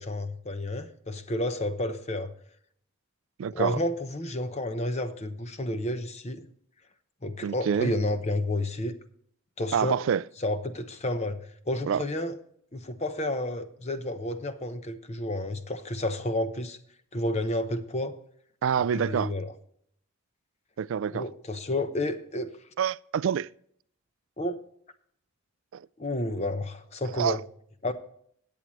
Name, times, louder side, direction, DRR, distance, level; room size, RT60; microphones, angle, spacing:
voice 1, 0.0-2.3 3.5-6.5 7.2-9.0 9.6-10.0 10.4-11.4 11.7-12.3 12.7-16.8 17.1-18.2 18.9-19.5 21.1-22.5 24.4-24.6 26.0-27.4 27.8-27.9, left 1 dB, 30° left, 0.8 m, -30 dB
voice 2, 3.4-3.8 7.4-7.9 9.7-10.2 11.9-12.0 18.6-19.3 20.8-21.2 22.8-23.5 25.7-25.9 27.0-27.4, right 7 dB, 65° right, 0.3 m, -27 dB
16.0 x 8.7 x 3.1 m
head